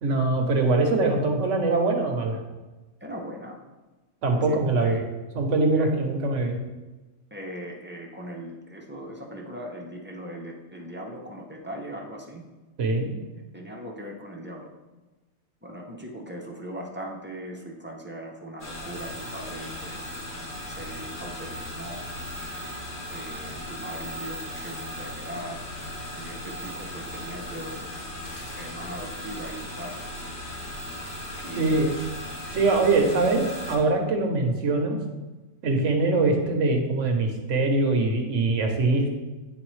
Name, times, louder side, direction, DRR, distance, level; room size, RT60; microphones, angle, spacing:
voice 1, 0.0-2.4 4.2-5.0 5.3-6.6 12.8-13.1 31.6-32.0 32.5-35.0 35.6-39.1, right 3 dB, 70° right, 3 dB, 1.2 m, -23 dB
voice 2, 3.0-3.6 4.3-5.1 5.7-5.9 7.3-12.4 13.3-14.7 15.6-20.1 20.7-22.0 23.1-25.6 26.2-27.9 28.6-29.9 31.4-31.9, right 1 dB, 15° right, -1 dB, 0.4 m, -39 dB
sound 1, 18.6-33.8, left 1 dB, 45° left, 1.1 m, -37 dB
9.3 x 3.8 x 3.1 m, 1.2 s
omnidirectional pair, 1.3 m